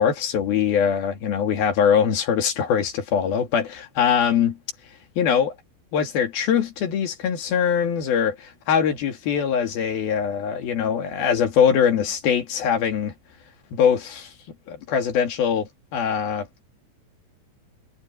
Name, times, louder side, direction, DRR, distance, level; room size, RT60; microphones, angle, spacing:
voice 1, 0.0-4.6 5.2-5.5 5.9-13.1 13.7-14.3 14.7-16.5, left 7 dB, 55° left, 3.9 m, -22 dB
omnidirectional pair, 5.5 m